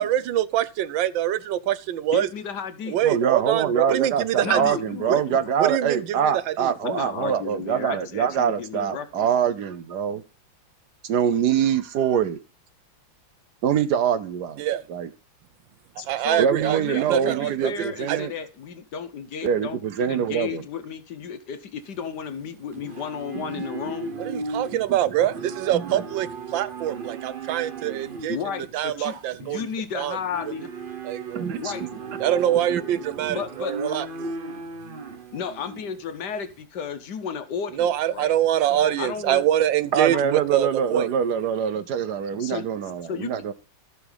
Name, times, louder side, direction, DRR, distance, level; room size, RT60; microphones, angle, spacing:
voice 1, 0.0-2.3 2.9-4.8 5.1-5.2 5.6-6.7 14.6-14.8 16.1-17.7 18.1-18.2 24.2-28.4 28.7-29.7 29.9-30.2 31.0-31.5 32.2-34.1 37.8-41.1, right 12 dB, 80° right, 1.4 m, -24 dB
voice 2, 2.1-3.0 4.4-5.5 6.8-9.3 16.0-19.8 20.1-24.2 28.3-30.7 31.5-31.9 33.3-33.7 35.3-38.4 38.7-39.4 42.4-42.6 43.1-43.3, left 7 dB, 65° left, 1.5 m, -33 dB
voice 3, 3.0-10.2 11.0-12.4 13.6-14.6 14.9-15.1 16.4-18.3 19.4-20.6 25.1-25.2 25.7-26.0 31.3-31.9 32.7-32.8 39.9-43.5, right 8 dB, 65° right, 1.3 m, -24 dB
Livestock farm animals working animals, 21.8-36.6, right 4 dB, 40° right, 0.8 m, -37 dB
14.0 x 6.1 x 4.0 m
omnidirectional pair, 2.1 m